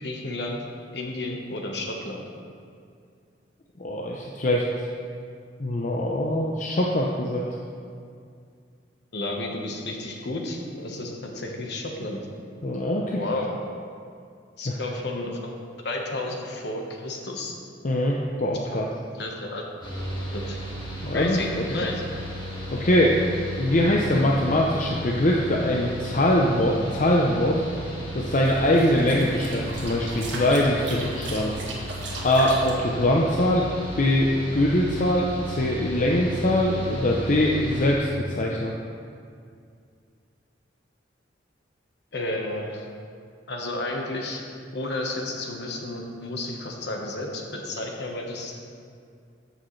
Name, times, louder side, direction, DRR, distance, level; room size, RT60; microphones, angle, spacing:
voice 1, 0.0-0.6 0.9-2.2 9.1-12.2 13.2-13.5 14.6-15.5 15.8-17.5 18.7-18.8 19.1-19.6 20.3-20.6 21.1-22.0 42.1-42.9 43.5-44.4 44.7-48.6, left 2 dB, 60° left, 1 dB, 1.2 m, -32 dB
voice 2, 3.8-4.6 5.6-7.5 12.6-13.2 14.7-14.8 17.8-18.9 21.0-21.4 22.7-23.2 23.6-27.6 28.1-31.5 32.2-33.7 34.0-38.7, left 1 dB, 45° left, -2 dB, 0.6 m, -22 dB
Mechanical fan, 19.8-37.9, equal, 25° left, 1.7 m, -35 dB
sound 1, 28.3-32.7, right 2 dB, 75° right, 1.7 m, -37 dB
14.0 x 6.4 x 3.2 m, 2.3 s
head